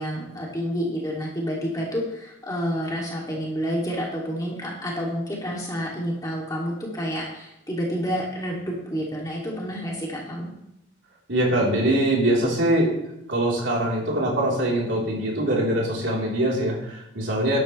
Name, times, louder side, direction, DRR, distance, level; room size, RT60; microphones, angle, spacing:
voice 1, 0.0-10.5, equal, 20° left, -3 dB, 2.6 m, -29 dB
voice 2, 11.3-12.9 13.3-17.6, right 1 dB, 70° right, -3 dB, 3.7 m, -23 dB
12.5 x 12.0 x 3.3 m, 0.82 s
head